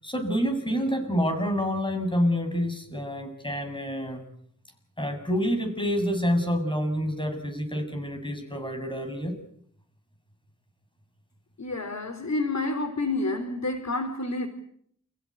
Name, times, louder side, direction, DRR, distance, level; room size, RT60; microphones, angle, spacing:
voice 1, 0.0-4.2 5.0-9.4, equal, 15° left, 5 dB, 7.1 m, -27 dB
voice 2, 11.6-14.5, left 2 dB, 55° left, 6 dB, 3.5 m, -29 dB
29.5 x 16.0 x 10.0 m, 0.68 s
wide cardioid pair, 75°, 32 cm